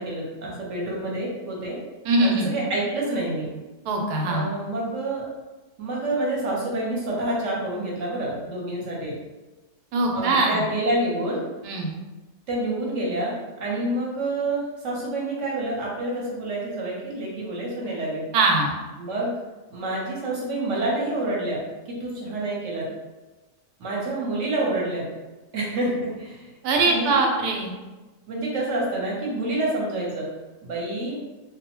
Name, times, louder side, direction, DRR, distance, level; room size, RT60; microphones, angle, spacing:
voice 1, 0.0-1.8 2.2-3.5 4.3-5.3 5.8-9.1 10.1-11.4 12.5-13.3 13.6-18.2 19.0-19.3 19.7-21.6 21.9-22.9 23.8-25.1 25.5-26.5 26.9-27.2 28.3-30.3 30.6-31.1, right 2 dB, 60° right, -4 dB, 1.0 m, -28 dB
voice 2, 2.0-2.5 3.9-4.5 9.9-10.6 11.6-11.9 18.3-18.8 26.6-27.7, right 2 dB, 90° right, 1 dB, 1.1 m, -22 dB
2.5 x 2.1 x 2.9 m, 1.2 s
omnidirectional pair, 1.6 m